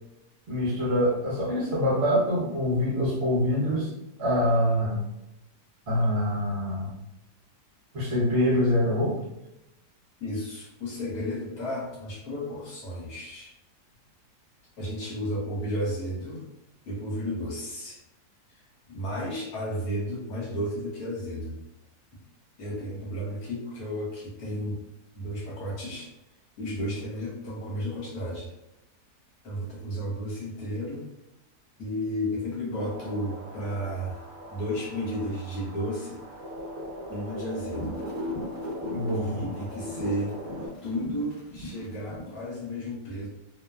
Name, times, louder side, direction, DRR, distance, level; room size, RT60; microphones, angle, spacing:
voice 1, 0.5-3.9 4.2-5.0 5.9-6.9 7.9-9.2 38.9-39.4, left 1 dB, 45° right, -6 dB, 1.2 m, -25 dB
voice 2, 10.2-13.5 14.8-16.4 16.8-18.0 18.5-18.6 18.9-21.6 22.6-24.8 25.2-26.1 26.6-28.5 29.4-31.1 31.8-36.2 37.1-38.0 39.1-40.4 40.8-43.3, equal, 65° left, -4 dB, 1.2 m, -33 dB
sound 1, 32.8-40.7, left 1 dB, 65° right, 1.0 m, -38 dB
sound 2, 37.5-42.4, left 1 dB, 50° left, 0.9 m, -42 dB
2.8 x 2.1 x 2.2 m, 0.86 s
omnidirectional pair, 1.8 m